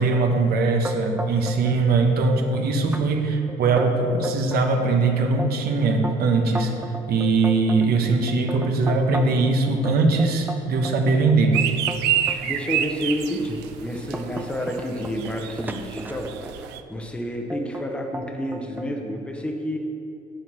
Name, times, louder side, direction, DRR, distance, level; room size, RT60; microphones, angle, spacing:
voice 1, 0.0-6.8 7.1-11.6 12.2-12.5, right 3 dB, 65° right, 3 dB, 1.0 m, -21 dB
sound 1, 0.8-1.8 2.0-2.6 2.9-3.0 3.5-4.7 5.1-9.5 9.8-12.4 13.0-13.2 13.6-16.7 17.5-17.9 18.1-18.9, equal, 10° right, 0.5 m, -33 dB
sound 2, 11.5-16.8, right 11 dB, 85° right, 0.5 m, -28 dB
voice 2, 12.4-19.8, equal, 5° left, 1 dB, 0.9 m, -30 dB
9.3 x 4.5 x 6.2 m, 2.6 s
cardioid pair, 110°, 17 cm